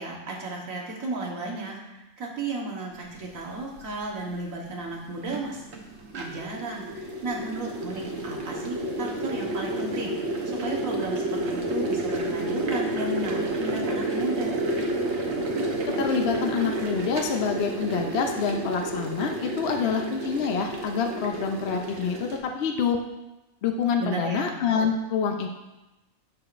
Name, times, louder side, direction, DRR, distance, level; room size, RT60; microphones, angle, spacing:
voice 1, 0.0-5.6 6.2-10.1 10.4-14.6 24.0-24.5, right 2 dB, 80° right, -1 dB, 1.7 m, -34 dB
sound 1, 3.8-3.9 4.9-22.4, right 1 dB, 55° right, 1.2 m, -30 dB
voice 2, 15.9-23.0 23.6-25.5, left 6 dB, 60° left, 4 dB, 0.7 m, -27 dB
13.0 x 4.9 x 2.5 m, 1.0 s
omnidirectional pair, 1.4 m